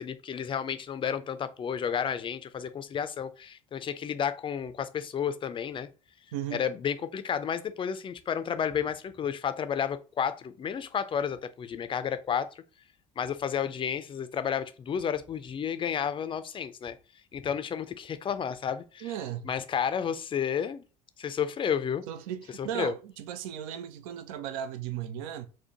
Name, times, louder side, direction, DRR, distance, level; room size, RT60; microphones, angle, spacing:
voice 1, 0.0-5.9 6.5-12.5 13.2-17.0 17.3-19.1 19.4-20.8 21.2-22.1 22.6-22.9, left 8 dB, 25° left, 0.4 m, -31 dB
voice 2, 6.3-6.6 19.0-19.5 22.1-25.5, right 10 dB, 65° right, 0.4 m, -36 dB
4.4 x 2.1 x 2.8 m
hypercardioid pair, 65°, 19 cm